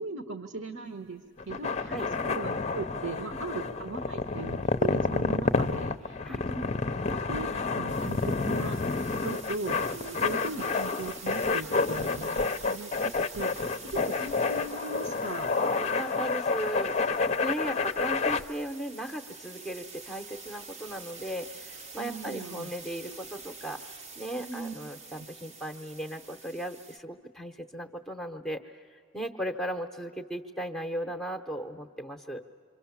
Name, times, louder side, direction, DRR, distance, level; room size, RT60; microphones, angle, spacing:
voice 1, 0.0-8.8 9.2-15.5 22.0-22.7 24.4-24.7 25.2-25.3, right 3 dB, 55° right, 7 dB, 1.2 m, -39 dB
sound 1, 1.4-18.4, left 4 dB, 30° left, 0.5 m, -29 dB
sound 2, 7.9-27.0, right 4 dB, 30° right, 0.8 m, -47 dB
voice 2, 15.5-32.4, right 1 dB, 5° left, 5 dB, 0.8 m, -37 dB
28.0 x 25.0 x 7.2 m, 2.3 s
head